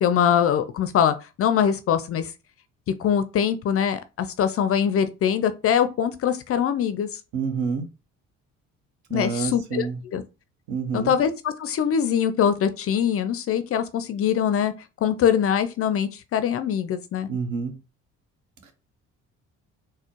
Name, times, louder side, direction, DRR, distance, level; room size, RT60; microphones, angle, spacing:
voice 1, 0.0-2.3 3.0-7.1 9.1-9.9 10.1-10.2 10.9-14.7 15.0-17.3, left 8 dB, 40° left, 0.4 m, -23 dB
voice 2, 7.3-7.9 9.1-10.0 10.7-11.1 17.3-17.7 18.6-18.7, right 5 dB, 60° right, 0.9 m, -28 dB
4.0 x 2.1 x 3.0 m
hypercardioid pair, 50°, 37 cm